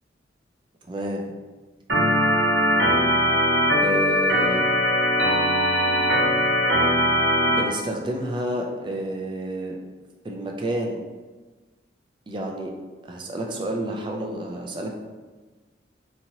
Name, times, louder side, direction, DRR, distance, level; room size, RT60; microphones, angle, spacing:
voice 1, 0.9-1.3 3.8-4.7 7.5-9.8 10.2-11.0 12.3-12.7 13.1-14.9, right 1 dB, 25° right, 1 dB, 0.3 m, -30 dB
Organ, 1.9-7.6, equal, 70° right, 0.9 m, -20 dB
2.9 x 2.7 x 2.6 m, 1.3 s
head